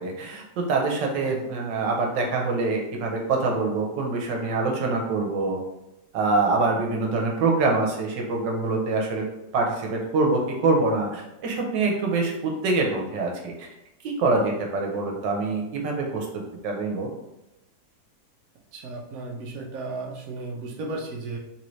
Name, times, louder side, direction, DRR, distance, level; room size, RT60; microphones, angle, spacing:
voice 1, 0.0-5.6 6.1-9.2 9.5-13.7 14.0-16.3 16.6-17.1, right 3 dB, 85° right, 1 dB, 1.4 m, -25 dB
voice 2, 18.7-21.4, right 3 dB, 60° right, -1 dB, 1.0 m, -35 dB
3.7 x 2.7 x 3.1 m, 0.90 s
omnidirectional pair, 1.9 m